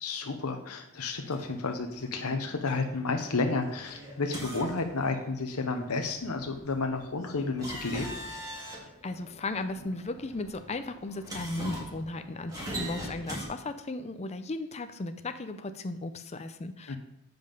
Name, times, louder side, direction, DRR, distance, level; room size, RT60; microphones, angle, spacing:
voice 1, 0.0-8.1 16.9-17.0, left 3 dB, 75° left, 5 dB, 0.8 m, -31 dB
sound 1, 1.2-13.5, equal, 15° right, 1.8 m, -43 dB
voice 2, 9.0-17.0, left 2 dB, 30° left, 9 dB, 0.5 m, -36 dB
7.7 x 5.3 x 5.2 m, 0.78 s
head